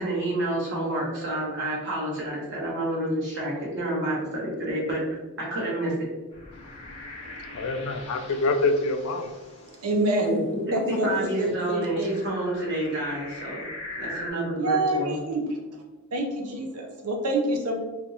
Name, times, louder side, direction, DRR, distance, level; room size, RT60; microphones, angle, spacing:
voice 1, 0.0-6.1 10.2-10.4 10.7-10.8 11.0-13.7 13.9-15.2, right 1 dB, 50° right, -4 dB, 1.1 m, -29 dB
sound 1, 6.3-10.2 11.1-14.3, left 2 dB, 25° left, 0.7 m, -42 dB
voice 2, 6.5-9.3, left 2 dB, 80° left, 6 dB, 0.4 m, -27 dB
voice 3, 9.7-10.4 10.7-12.2 14.6-15.4 15.7-15.8 16.1-17.8, right 1 dB, 90° right, 1 dB, 0.7 m, -27 dB
3.5 x 2.5 x 2.8 m, 1.2 s
head